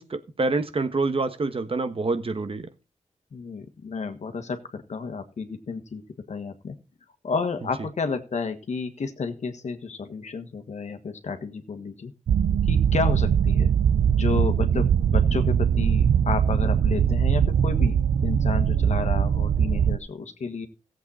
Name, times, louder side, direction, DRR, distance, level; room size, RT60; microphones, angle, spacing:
voice 1, 0.0-2.7, right 3 dB, 50° right, 1.3 m, -26 dB
voice 2, 3.3-6.0 6.3-6.8 7.2-12.1 12.7-13.7 14.1-20.7, left 4 dB, 70° left, 1.6 m, -31 dB
sound 1, 12.3-20.0, right 8 dB, 85° right, 0.6 m, -21 dB
15.0 x 8.0 x 4.2 m
cardioid pair, 60°, 12 cm